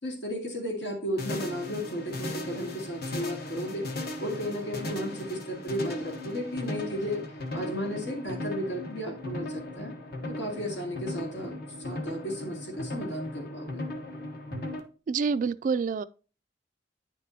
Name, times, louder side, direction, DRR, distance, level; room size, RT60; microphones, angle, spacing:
voice 1, 0.0-3.9 4.2-7.2 7.5-9.9 10.3-13.9, equal, 80° left, 2.4 m, -34 dB
sound 1, 1.2-14.8, left 1 dB, 60° left, 1.2 m, -37 dB
voice 2, 15.1-16.0, right 5 dB, 45° right, 0.3 m, -27 dB
9.6 x 6.1 x 2.7 m
head